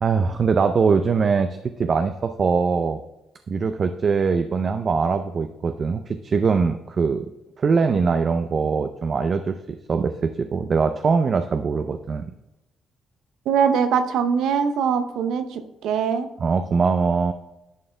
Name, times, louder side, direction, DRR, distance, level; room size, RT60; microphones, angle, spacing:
voice 1, 0.0-3.0 3.5-7.3 7.6-9.6 9.9-12.3 16.4-17.3, right 5 dB, 45° right, 8 dB, 0.4 m, -22 dB
voice 2, 13.5-16.3, right 7 dB, 85° right, 9 dB, 0.7 m, -22 dB
11.0 x 4.3 x 3.4 m, 0.93 s
cardioid pair, 90°, 0 cm